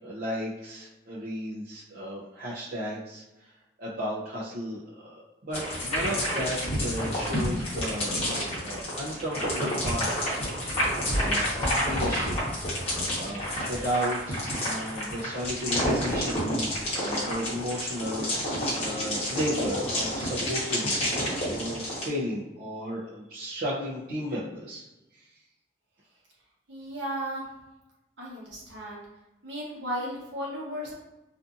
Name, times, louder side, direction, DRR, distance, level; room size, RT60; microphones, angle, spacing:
voice 1, 0.0-3.2 3.8-10.5 11.1-12.4 13.2-24.8 25.1-25.2, equal, 55° right, -7 dB, 0.5 m, -34 dB
sound 1, 5.5-22.1, equal, 35° left, 1.0 m, -29 dB
voice 2, 26.7-27.5 28.2-29.1 29.4-30.9, equal, 75° right, -4 dB, 0.9 m, -35 dB
2.5 x 2.5 x 2.4 m, 1.0 s
head